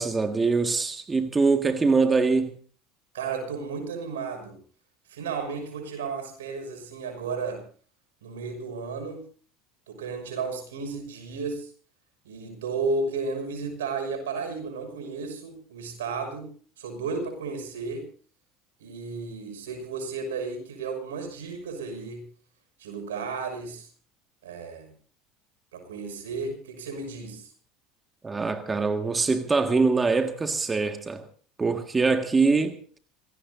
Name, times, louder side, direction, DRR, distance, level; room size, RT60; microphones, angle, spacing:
voice 1, 0.0-2.5 28.2-31.2 31.6-32.8, right 4 dB, 20° right, 1.8 m, -23 dB
voice 2, 3.1-4.6 5.1-7.6 8.2-9.2 9.9-11.7 12.2-16.5 16.8-18.1 18.8-22.2 22.8-23.9 24.4-24.9 25.7-27.5, right 4 dB, 85° right, 6.1 m, -33 dB
26.0 x 17.5 x 2.7 m
hypercardioid pair, 80°, 0 cm